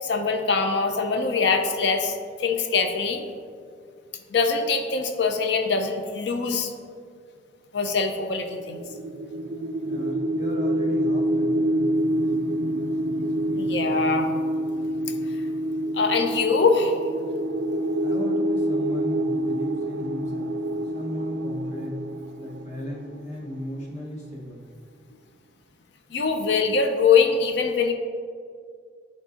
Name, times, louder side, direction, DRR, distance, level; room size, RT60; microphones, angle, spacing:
voice 1, 0.0-3.2 4.3-6.7 7.7-8.8 13.6-14.3 15.9-17.0 26.1-27.9, left 5 dB, 65° left, 5 dB, 0.5 m, -23 dB
sound 1, 8.5-23.6, right 1 dB, 70° right, 0.3 m, -27 dB
voice 2, 9.8-11.9 18.0-20.5 20.9-22.1 22.4-24.7, equal, 40° left, -2 dB, 1.0 m, -36 dB
9.8 x 4.0 x 2.5 m, 2.1 s
head